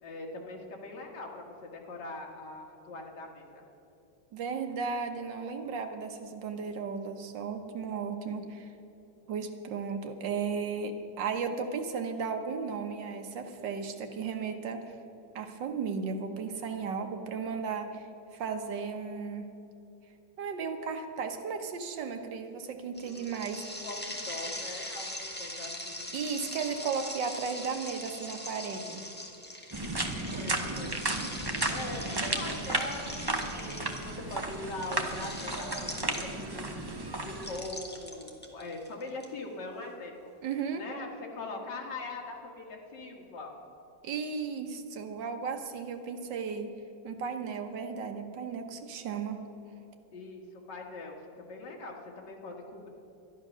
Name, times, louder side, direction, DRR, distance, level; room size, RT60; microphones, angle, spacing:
voice 1, 0.0-3.7 23.0-26.1 30.4-31.0 31.6-40.3 40.8-43.5 50.1-52.9, left 2 dB, 65° left, 0 dB, 2.3 m, -42 dB
voice 2, 4.3-8.7 9.3-15.0 15.3-19.5 20.4-23.8 26.1-29.0 40.4-40.8 44.0-46.7 47.0-49.4, right 5 dB, 75° right, 6 dB, 1.7 m, -35 dB
sound 1, 23.0-36.6 37.4-39.2, left 1 dB, 5° left, 1.3 m, -42 dB
sound 2, 29.7-37.6, right 2 dB, 20° right, 0.6 m, -34 dB
12.5 x 11.0 x 6.2 m, 2.9 s
omnidirectional pair, 2.0 m